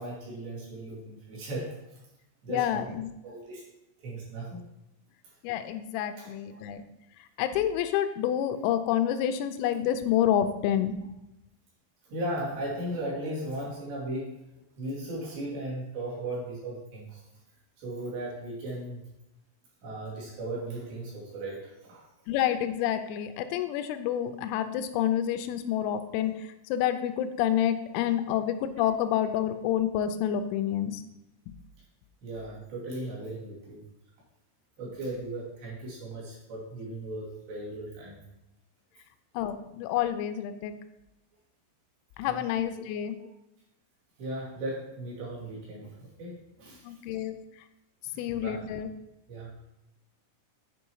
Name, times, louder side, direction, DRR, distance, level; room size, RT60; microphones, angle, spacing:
voice 1, 0.0-2.0 2.4-2.8 3.2-3.6 4.0-4.6 5.2-5.4 6.2-6.6 12.1-14.4 14.8-17.2 17.8-19.0 19.8-22.1 32.2-33.9 34.8-38.2 42.2-42.4 42.7-42.8 43.2-43.3 44.2-47.0 48.1-48.7 49.3-49.6, right 1 dB, 60° right, -5 dB, 4.6 m, -37 dB
voice 2, 2.5-3.1 5.4-6.8 7.4-11.0 22.3-31.0 39.3-40.7 42.2-43.2 46.8-47.4 48.2-48.9, left 10 dB, 90° left, 9 dB, 3.4 m, -28 dB
9.6 x 5.4 x 4.7 m, 0.87 s
omnidirectional pair, 6.0 m